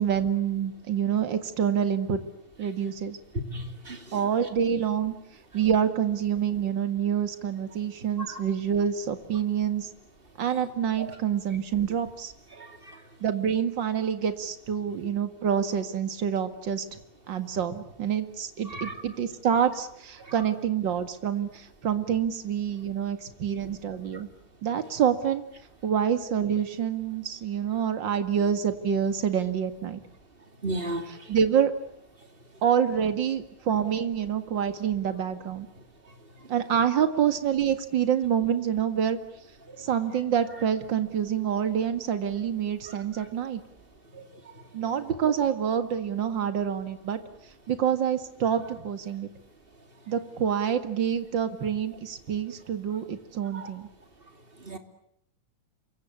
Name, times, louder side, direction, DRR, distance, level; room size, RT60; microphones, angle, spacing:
voice 1, 0.0-2.2 2.6-3.2 4.1-5.1 5.5-9.9 10.4-12.3 13.2-17.0 17.3-24.3 24.6-25.4 25.8-30.0 31.1-31.7 32.6-35.7 36.5-39.2 39.8-43.6 44.7-47.2 47.7-49.3 50.1-53.9, right 8 dB, 40° right, 2.3 m, -27 dB
voice 2, 3.5-4.0 8.3-8.4 11.0-11.1 12.6-12.9 18.7-18.9 30.6-31.1 44.1-44.2 53.5-53.6 54.6-54.8, right 2 dB, 20° right, 2.8 m, -34 dB
28.0 x 24.5 x 8.4 m
omnidirectional pair, 3.3 m